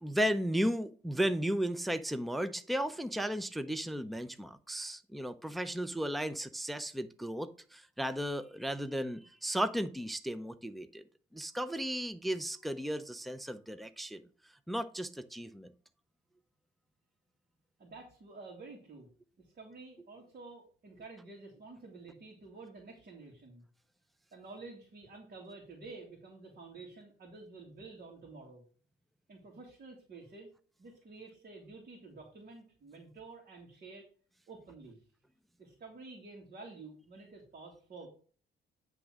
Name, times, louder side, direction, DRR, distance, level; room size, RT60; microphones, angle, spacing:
voice 1, 0.0-11.0 11.3-14.2 14.7-15.7, equal, ahead, 0.6 m, -35 dB
voice 2, 17.8-19.1 19.4-23.6 24.3-28.6 29.3-30.5 30.8-34.1 34.5-35.0 35.6-38.1, right 3 dB, 45° right, 2.4 m, -50 dB
9.7 x 3.6 x 6.1 m
cardioid pair, 90°, 20 cm